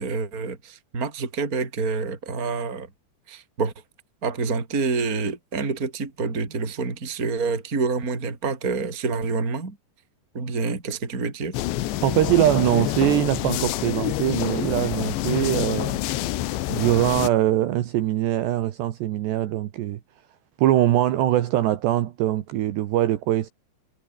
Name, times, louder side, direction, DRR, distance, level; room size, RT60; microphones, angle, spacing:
voice 1, 0.0-2.9 3.3-3.7 4.2-9.8 10.3-11.6, right 4 dB, 20° right, 3.6 m, -27 dB
sound 1, 11.5-17.3, left 15 dB, 80° left, 3.5 m, -27 dB
voice 2, 12.0-16.0 16.7-20.0 20.6-23.5, right 13 dB, 70° right, 3.5 m, -22 dB
omnidirectional pair, 5.2 m